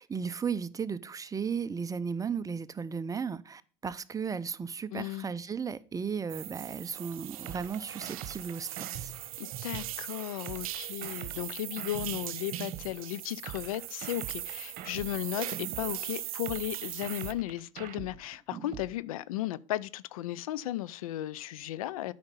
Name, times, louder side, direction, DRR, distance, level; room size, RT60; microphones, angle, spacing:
voice 1, 0.0-9.1, right 6 dB, 20° right, 0.6 m, -35 dB
voice 2, 4.9-5.3 9.4-22.1, left 14 dB, 85° left, 0.4 m, -35 dB
sound 1, 6.3-17.3, right 14 dB, 85° right, 0.6 m, -40 dB
sound 2, 7.5-9.9 10.5-12.9 13.5-15.9 16.5-18.9, right 11 dB, 55° right, 1.1 m, -43 dB
8.8 x 5.1 x 5.6 m
hypercardioid pair, 85°, 18 cm